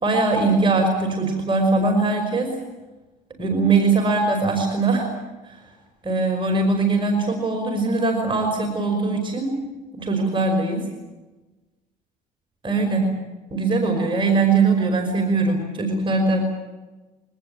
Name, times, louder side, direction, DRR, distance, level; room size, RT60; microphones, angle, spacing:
voice 1, 0.0-2.5 3.3-5.1 5.5-5.6 6.0-9.5 10.0-10.9 12.6-13.1 13.5-16.4, right 3 dB, 30° right, 3 dB, 5.4 m, -21 dB
24.0 x 19.5 x 8.8 m, 1.2 s
cardioid pair, 95°, 16 cm